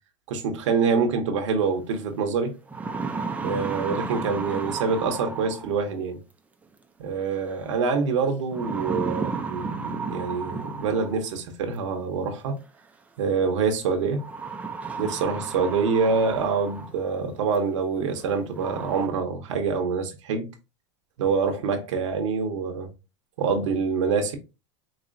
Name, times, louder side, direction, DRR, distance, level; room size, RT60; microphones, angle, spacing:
voice 1, 0.3-2.5 3.4-6.2 7.0-12.5 13.2-14.2 15.0-20.5 21.2-22.9 23.4-24.4, right 5 dB, 80° right, 1.0 m, -26 dB
sound 1, 1.9-2.0 2.5-5.9 7.3-7.7 8.5-11.3 12.6-12.7 14.2-17.1 17.5-17.6 18.2-18.3 18.5-19.1, right 4 dB, 10° right, 0.5 m, -33 dB
4.2 x 3.0 x 2.6 m
supercardioid pair, 130°, 16 cm